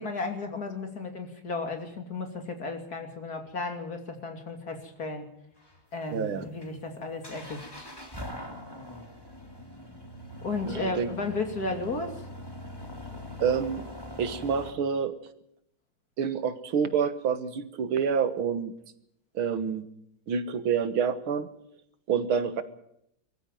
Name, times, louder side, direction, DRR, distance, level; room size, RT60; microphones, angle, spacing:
voice 1, 0.0-5.3 5.9-7.9 10.4-12.3, left 3 dB, 45° left, 5 dB, 3.2 m, -34 dB
sound 1, 5.6-14.7, left 1 dB, 10° left, 3.1 m, -43 dB
voice 2, 6.1-6.4 10.7-11.1 13.4-13.8 14.2-15.1 16.2-18.7 19.4-19.9 20.3-21.5 22.1-22.6, right 7 dB, 90° right, 11 dB, 2.2 m, -27 dB
22.5 x 14.5 x 9.1 m, 0.77 s
omnidirectional pair, 2.2 m